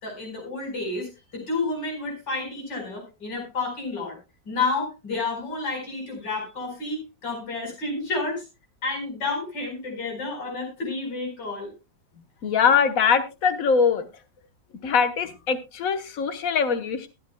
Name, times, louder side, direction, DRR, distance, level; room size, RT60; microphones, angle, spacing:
voice 1, 0.0-4.2 4.5-8.4 8.8-11.7, left 3 dB, 80° left, 1 dB, 5.2 m, -30 dB
voice 2, 12.4-14.1 14.8-17.1, left 6 dB, 55° left, 9 dB, 1.5 m, -22 dB
22.0 x 8.7 x 2.2 m, 0.26 s
omnidirectional pair, 1.9 m